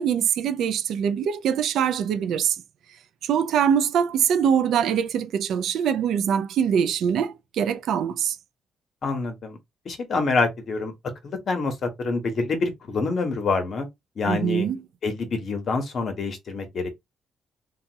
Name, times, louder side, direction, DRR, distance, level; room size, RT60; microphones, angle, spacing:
voice 1, 0.0-2.6 3.2-8.4 14.3-14.8, right 8 dB, 75° right, 0.4 m, -23 dB
voice 2, 9.0-9.6 9.8-10.9 11.2-13.9 14.2-14.7 15.0-16.9, left 3 dB, 55° left, 1.1 m, -26 dB
2.8 x 2.3 x 2.9 m
cardioid pair, 90°, 0 cm